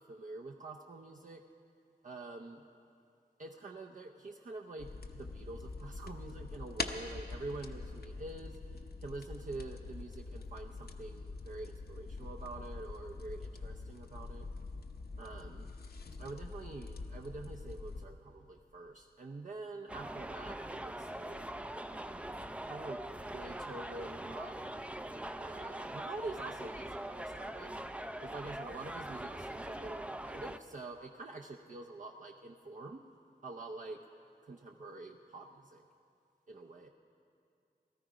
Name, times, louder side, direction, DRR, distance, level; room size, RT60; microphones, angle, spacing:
voice 1, 0.0-1.4 2.0-2.6 3.4-14.5 15.2-15.7 16.2-21.4 22.7-23.0 23.3-24.7 25.4-27.7 28.2-33.0 33.4-34.0 34.4-35.8 36.5-36.9, right 2 dB, 50° right, 1 dB, 0.6 m, -46 dB
sound 1, 4.8-18.1, left 3 dB, 65° left, 0.8 m, -44 dB
sound 2, 19.9-30.6, right 1 dB, 5° right, 0.4 m, -42 dB
18.0 x 13.0 x 5.0 m, 2.5 s
wide cardioid pair, 80°, 17 cm